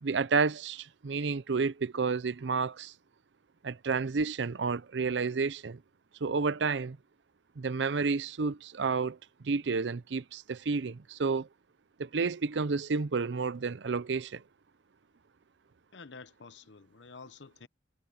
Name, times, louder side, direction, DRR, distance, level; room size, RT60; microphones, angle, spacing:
voice 1, 0.0-2.9 3.6-5.8 6.2-7.0 7.6-11.5 12.0-14.4, right 4 dB, 75° right, 0.6 m, -30 dB
voice 2, 15.9-17.7, left 4 dB, 80° left, 0.9 m, -49 dB
head